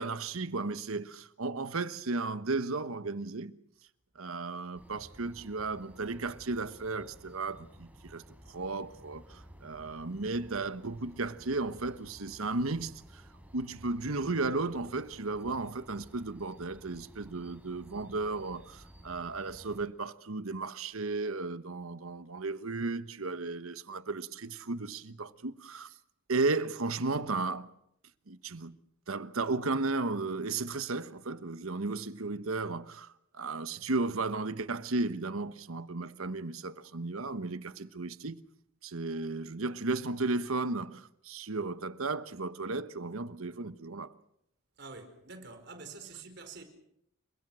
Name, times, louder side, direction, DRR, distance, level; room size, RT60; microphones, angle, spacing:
voice 1, 0.0-3.5 4.1-13.2 13.5-25.9 26.3-27.7 28.3-28.8 29.1-38.4 38.8-44.1, right 3 dB, 90° right, 1.2 m, -34 dB
sound 1, 4.7-19.9, equal, 5° right, 4.1 m, -54 dB
voice 2, 44.8-46.6, right 4 dB, 55° right, 4.9 m, -47 dB
29.5 x 24.5 x 6.3 m
head